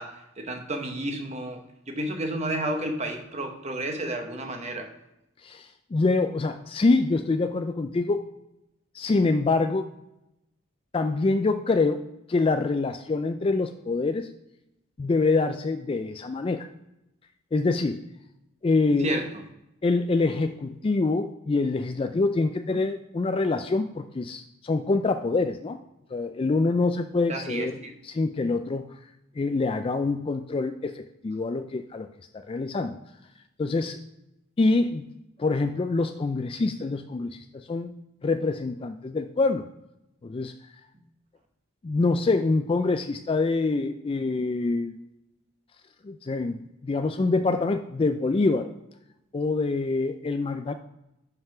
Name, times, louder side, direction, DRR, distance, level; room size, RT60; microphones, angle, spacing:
voice 1, 0.0-1.6 1.9-4.9 19.0-19.3 27.3-27.9, right 1 dB, 35° right, 4 dB, 1.1 m, -31 dB
voice 2, 5.4-8.2 8.9-9.9 10.9-12.0 12.3-14.3 15.0-16.7 17.5-18.0 18.6-19.1 19.8-25.8 26.1-27.8 28.0-28.9 29.4-32.1 32.3-33.0 33.6-34.0 34.6-35.1 35.4-37.9 38.2-39.6 40.2-40.5 41.8-44.9 46.0-48.7 49.3-50.7, left 3 dB, 25° left, 7 dB, 0.3 m, -25 dB
5.6 x 5.5 x 5.7 m, 0.87 s
head